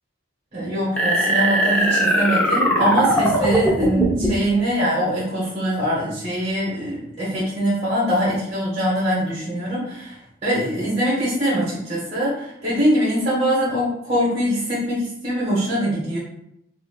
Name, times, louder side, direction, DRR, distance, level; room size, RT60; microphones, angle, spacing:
voice 1, 0.5-16.2, equal, 35° right, -8 dB, 1.4 m, -23 dB
sound 1, 1.0-4.5, right 1 dB, 5° left, 0.6 m, -19 dB
5.8 x 2.7 x 2.2 m, 0.79 s
head